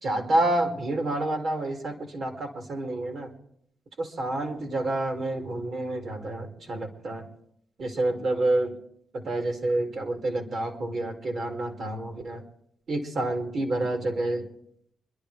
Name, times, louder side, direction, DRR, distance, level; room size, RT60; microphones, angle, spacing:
voice 1, 0.0-3.3 4.0-7.3 7.8-8.7 9.1-12.4 12.9-14.4, right 2 dB, 55° right, 3 dB, 2.6 m, -28 dB
26.0 x 11.5 x 3.4 m, 0.69 s
cardioid pair, 90°, 0 cm